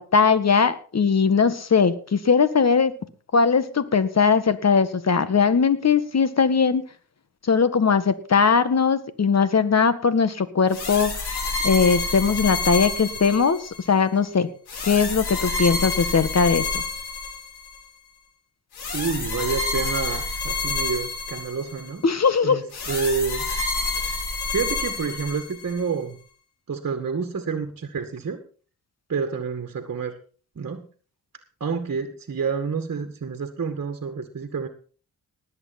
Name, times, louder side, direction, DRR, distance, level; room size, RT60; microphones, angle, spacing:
voice 1, 0.0-2.9 3.3-6.8 7.5-11.4 11.6-14.5 14.8-16.8 22.0-22.6, left 5 dB, 40° left, 12 dB, 1.8 m, -20 dB
Science Fiction SF Air Raid Warning, 10.7-13.9 14.7-17.8 18.7-21.9 22.7-25.8, left 3 dB, 75° left, 4.5 m, -28 dB
voice 2, 18.9-22.1 22.4-23.5 24.5-26.2 26.7-28.4 29.1-30.2 30.6-30.9 31.6-34.7, right 5 dB, 40° right, 5 dB, 1.9 m, -28 dB
19.0 x 8.3 x 4.3 m, 0.41 s
supercardioid pair, 50°, 39 cm